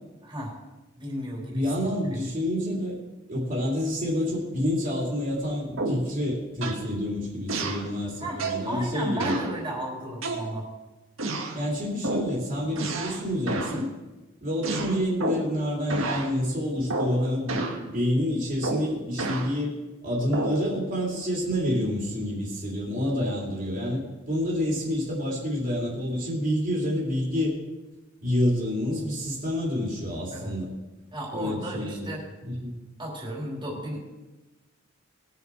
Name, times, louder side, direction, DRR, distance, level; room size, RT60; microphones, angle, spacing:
voice 1, 0.2-0.5 1.0-1.7 2.1-2.2 8.2-10.7 30.3-30.6 31.1-32.2 33.0-34.0, equal, 25° right, -3 dB, 3.5 m, -34 dB
voice 2, 1.5-3.0 3.3-9.4 11.5-13.9 14.4-19.7 20.0-27.6 28.2-30.7 31.3-32.1 32.4-32.8, equal, 45° right, -4 dB, 3.1 m, -28 dB
sound 1, 5.8-6.1 6.6-6.9 7.5-7.9 8.4-8.7 9.2-9.5 10.2-10.8 11.2-11.6 12.0-12.3 12.8-13.2 13.5-13.8 14.6-15.6 15.9-16.3 16.9-17.2 17.5-17.8 18.6-19.5 20.3-20.6, right 2 dB, 85° right, 1.8 m, -30 dB
21.0 x 7.1 x 4.5 m, 1.1 s
head